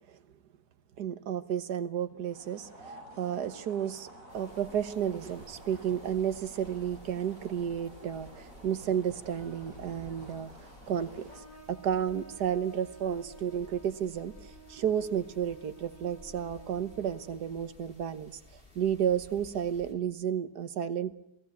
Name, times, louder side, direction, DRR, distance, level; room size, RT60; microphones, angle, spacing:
voice 1, 1.0-18.4 18.7-21.1, right 9 dB, 80° right, 12 dB, 1.7 m, -32 dB
sound 1, 2.3-11.4, right 1 dB, 55° right, 6.8 m, -51 dB
sound 2, 4.3-19.9, left 2 dB, 35° left, 4.3 m, -55 dB
Trumpet, 11.3-17.8, right 4 dB, 55° left, 5.1 m, -53 dB
28.0 x 18.0 x 8.4 m, 0.78 s
omnidirectional pair, 1.7 m